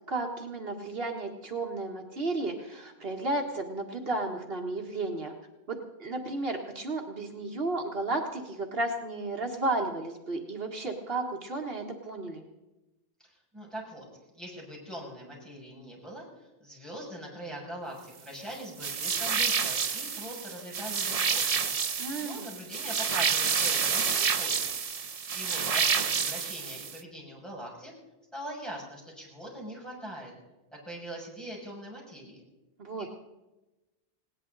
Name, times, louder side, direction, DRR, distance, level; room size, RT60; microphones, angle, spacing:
voice 1, 0.1-5.3 5.7-12.4 22.0-22.5 32.8-33.1, right 2 dB, 70° right, 2 dB, 1.8 m, -33 dB
voice 2, 13.2-14.0 14.3-21.7 22.2-24.6 25.3-27.9 28.3-30.3 30.7-32.4, equal, ahead, -4 dB, 6.6 m, -42 dB
sound 1, 18.8-27.0, right 6 dB, 40° right, 0.7 m, -29 dB
19.5 x 18.0 x 4.0 m, 1.0 s
omnidirectional pair, 1.0 m